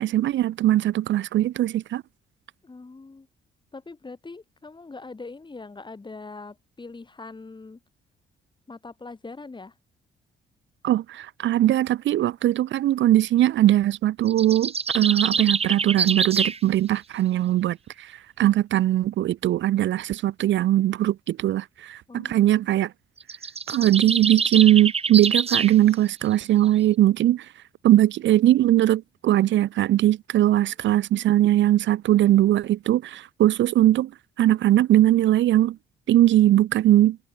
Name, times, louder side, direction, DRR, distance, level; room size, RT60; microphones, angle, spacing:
voice 1, 0.0-2.0 10.8-22.9 23.7-27.5 27.8-34.1 34.4-35.8 36.1-37.2, right 13 dB, 70° right, 0.7 m, -20 dB
voice 2, 2.6-3.3 3.7-7.8 8.7-9.7 22.1-22.7, left 3 dB, 25° left, 4.6 m, -42 dB
sound 1, 14.3-16.6 23.2-25.7, right 5 dB, 30° right, 1.4 m, -25 dB
cardioid pair, 90°, 20 cm